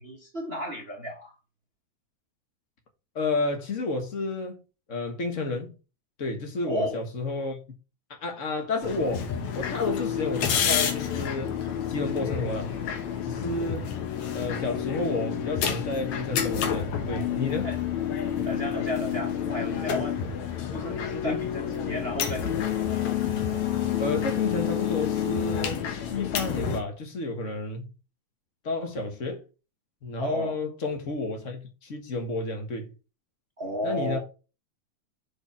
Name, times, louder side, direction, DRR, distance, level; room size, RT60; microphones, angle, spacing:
voice 1, 0.0-1.3 6.6-7.0 17.6-17.8 18.4-20.2 20.7-22.6 30.2-30.6 33.6-34.2, equal, 60° right, 0.6 m, -33 dB
voice 2, 3.1-4.6 4.9-5.7 6.2-7.6 8.1-9.3 9.5-11.6 11.9-12.7 13.2-13.9 14.3-17.7 21.2-21.4 24.0-27.8 28.6-29.4 30.0-32.9 33.8-34.2, left 3 dB, 45° left, 1.0 m, -31 dB
sound 1, 8.8-26.8, left 9 dB, 70° left, 2.5 m, -29 dB
6.1 x 5.0 x 4.7 m
omnidirectional pair, 3.5 m